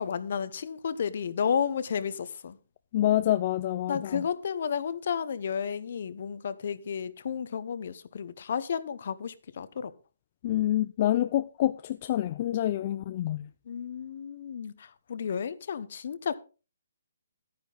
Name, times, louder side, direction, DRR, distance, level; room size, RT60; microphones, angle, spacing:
voice 1, 0.0-2.6 3.9-9.9 13.7-16.4, left 7 dB, 55° left, 0.9 m, -32 dB
voice 2, 2.9-4.2 10.4-13.5, left 13 dB, 35° left, 0.4 m, -27 dB
11.5 x 9.6 x 3.9 m
hypercardioid pair, 160°, 0 cm